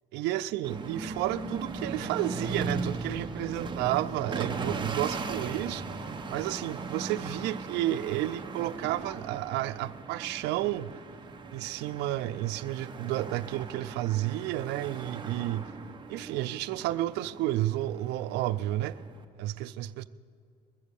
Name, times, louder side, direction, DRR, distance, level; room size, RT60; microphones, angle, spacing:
voice 1, 0.1-5.8 6.3-11.0 11.5-15.7 16.1-19.0 19.4-20.1, right 14 dB, 90° right, 0.5 m, -31 dB
sound 1, 0.6-19.2, right 3 dB, 30° right, 1.1 m, -38 dB
21.0 x 7.3 x 6.9 m
cardioid pair, 110°, 17 cm